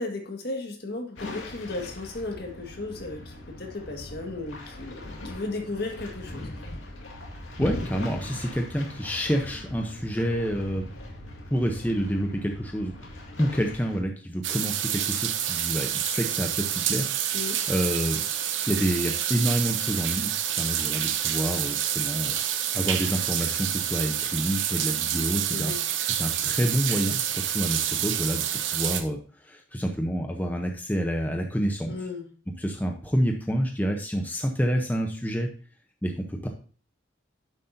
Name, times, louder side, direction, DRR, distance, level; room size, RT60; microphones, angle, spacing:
voice 1, 0.0-6.5 17.3-17.6 25.5-25.8 31.9-32.2, left 2 dB, 55° left, 3 dB, 1.8 m, -35 dB
sound 1, 1.2-14.0, left 1 dB, 80° left, 2.2 m, -40 dB
voice 2, 7.6-10.9 11.5-12.9 13.4-17.4 17.7-18.2 18.7-22.4 22.7-25.7 26.1-28.4 28.7-29.2 29.4-31.9 32.6-35.5 36.0-36.5, equal, 10° left, 3 dB, 0.7 m, -28 dB
sound 2, 14.4-29.0, right 10 dB, 70° right, 0.9 m, -28 dB
10.0 x 7.6 x 2.7 m, 0.41 s
head